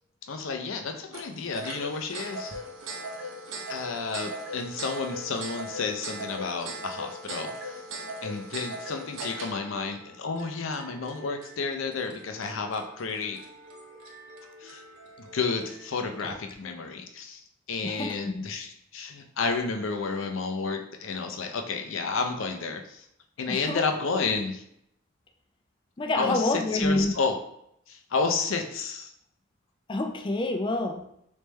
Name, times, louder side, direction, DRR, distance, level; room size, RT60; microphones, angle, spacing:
voice 1, 0.3-2.6 3.7-7.8 8.2-13.4 14.6-14.8 15.2-17.4 17.7-23.0 23.4-24.6 26.1-27.3 27.9-29.1, left 4 dB, 75° left, 5 dB, 0.5 m, -31 dB
sound 1, 1.1-15.9, right 1 dB, 75° right, 0.8 m, -40 dB
voice 2, 17.8-18.5 23.5-23.8 24.3-24.4 26.0-27.2 29.9-31.0, left 2 dB, 25° left, 4 dB, 0.4 m, -28 dB
3.3 x 3.2 x 3.2 m, 0.73 s
head